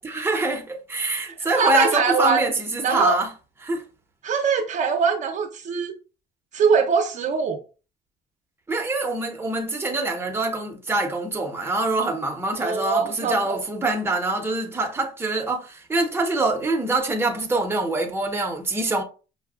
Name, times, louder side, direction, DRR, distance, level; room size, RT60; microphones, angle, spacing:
voice 1, 0.0-3.3 3.6-3.8 8.7-19.0, right 2 dB, 15° right, 0.8 m, -25 dB
voice 2, 1.3-2.4 2.8-3.2 4.2-5.9 6.5-7.6 12.6-13.6, right 5 dB, 50° right, 0.6 m, -22 dB
5.7 x 2.3 x 2.3 m
cardioid pair, 110°, 17 cm